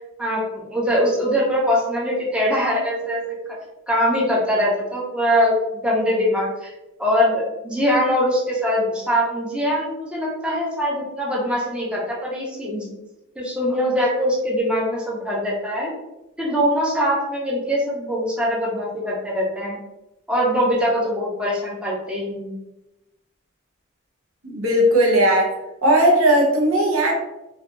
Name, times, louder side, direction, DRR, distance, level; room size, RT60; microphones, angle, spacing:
voice 1, 0.2-3.2 3.9-5.5 5.8-6.7 7.0-12.9 13.4-15.9 16.4-19.8 20.3-22.5, equal, 5° right, -4 dB, 0.5 m, -22 dB
voice 2, 24.4-25.5 25.8-27.1, right 1 dB, 85° right, 0 dB, 0.6 m, -17 dB
2.6 x 2.2 x 2.3 m, 0.95 s
head